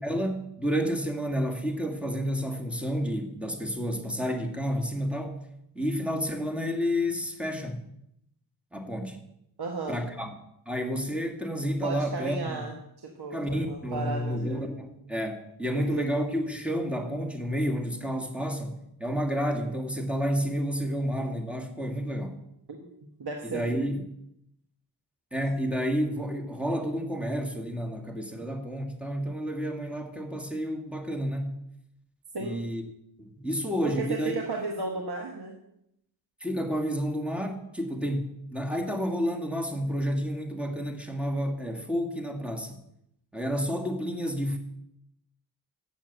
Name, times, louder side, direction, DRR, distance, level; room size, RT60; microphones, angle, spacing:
voice 1, 0.0-5.4 5.7-7.8 8.7-9.2 9.9-10.3 10.7-12.6 13.3-22.4 23.4-24.0 25.3-31.6 32.4-32.8 33.2-34.3 36.4-42.8 43.3-44.6, equal, 5° right, 4 dB, 2.0 m, -30 dB
voice 2, 9.6-10.0 11.8-12.7 13.0-14.6 15.7-16.1 22.9-23.7 32.3-32.7 33.8-35.5, right 3 dB, 55° right, 1 dB, 1.6 m, -34 dB
7.2 x 7.2 x 8.0 m, 0.78 s
cardioid pair, 50°, 45 cm